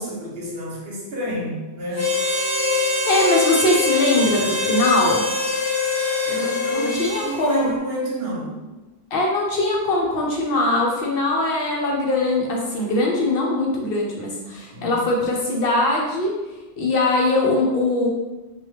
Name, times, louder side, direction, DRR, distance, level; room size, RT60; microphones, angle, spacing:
voice 1, 0.0-2.1 6.2-8.6 14.7-15.2, right 1 dB, 65° right, -4 dB, 1.0 m, -30 dB
Harmonica, 1.9-7.6, left 3 dB, 20° right, 0.4 m, -23 dB
voice 2, 3.1-5.2 6.7-7.7 9.1-16.3 16.8-18.1, left 2 dB, 65° left, -2 dB, 0.8 m, -21 dB
2.9 x 2.3 x 3.2 m, 1.1 s
omnidirectional pair, 1.1 m